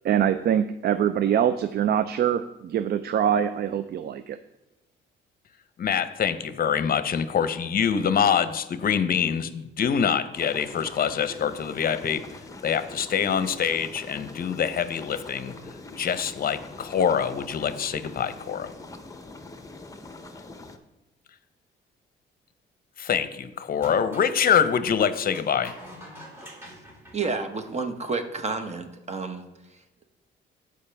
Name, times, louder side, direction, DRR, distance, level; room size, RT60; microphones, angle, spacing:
voice 1, 0.0-4.4, right 9 dB, 55° right, 12 dB, 0.4 m, -24 dB
voice 2, 5.8-12.3 12.6-15.6 15.9-18.7 23.0-25.7, left 7 dB, 50° left, 13 dB, 0.7 m, -25 dB
sound 1, 10.3-20.8, left 2 dB, 15° left, 0.8 m, -43 dB
sound 2, 23.7-24.3 25.3-28.0, equal, 10° right, 2.4 m, -45 dB
voice 3, 27.1-29.4, right 4 dB, 35° right, 7 dB, 1.1 m, -30 dB
14.0 x 5.1 x 3.4 m, 0.96 s
cardioid pair, 90°, 20 cm